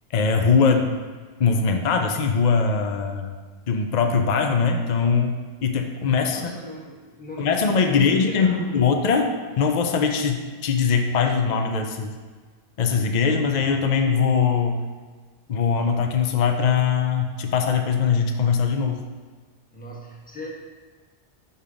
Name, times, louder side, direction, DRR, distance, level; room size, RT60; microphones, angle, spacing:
voice 1, 0.1-0.9 1.4-3.3 3.7-5.3 5.6-6.5 7.4-12.1 12.8-14.8 15.5-19.0, left 5 dB, 50° left, 4 dB, 0.6 m, -21 dB
voice 2, 5.8-8.8 19.7-20.5, equal, 10° left, -3 dB, 1.2 m, -38 dB
5.6 x 5.5 x 5.0 m, 1.5 s
omnidirectional pair, 1.1 m